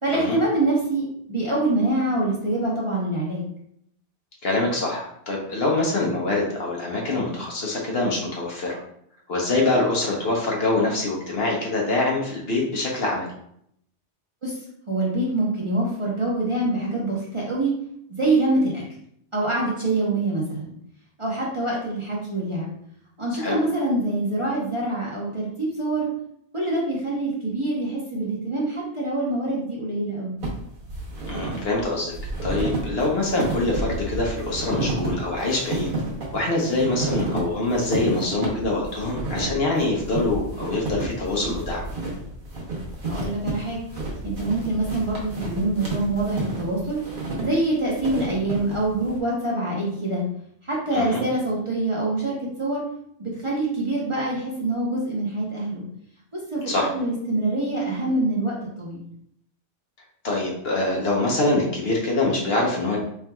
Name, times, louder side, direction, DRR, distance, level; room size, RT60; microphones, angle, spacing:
voice 1, 0.0-3.5 14.4-14.6 14.9-17.7 18.1-18.8 19.3-20.7 21.2-22.7 23.2-26.1 26.5-30.4 43.0-43.8 44.2-47.0 47.4-50.2 50.6-52.8 53.2-55.8 56.3-59.0, right 2 dB, 30° right, -6 dB, 0.8 m, -25 dB
voice 2, 4.4-8.8 9.3-13.3 23.4-23.6 31.3-32.1 32.4-35.9 36.3-41.8 50.9-51.2 56.7-56.9 60.2-63.0, left 2 dB, 60° left, -2 dB, 1.0 m, -24 dB
sound 1, 30.4-49.2, right 2 dB, 45° right, 1.2 m, -31 dB
4.4 x 3.4 x 2.2 m, 0.72 s
omnidirectional pair, 1.3 m